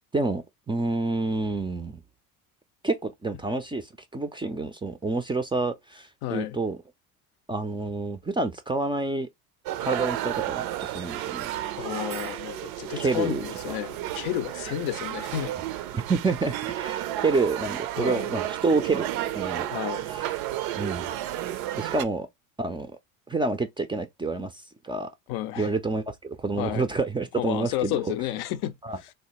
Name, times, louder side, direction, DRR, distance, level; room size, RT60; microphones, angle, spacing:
voice 1, 0.1-2.0 2.8-6.8 7.5-9.3 9.8-11.5 13.0-13.7 15.9-19.7 20.1-20.3 20.8-21.1 21.8-22.3 22.6-22.9 23.3-25.1 25.6-28.1 28.8-29.0, right 3 dB, 15° right, 0.4 m, -28 dB
voice 2, 6.2-6.6 11.8-15.5 15.9-16.0 18.0-18.3 19.7-20.1 25.3-25.7 26.6-26.9 27.3-28.7 29.0-29.1, left 12 dB, 65° left, 0.5 m, -31 dB
sound 1, 9.7-22.0, right 13 dB, 70° right, 0.5 m, -32 dB
3.2 x 2.1 x 2.8 m
supercardioid pair, 80°, 40 cm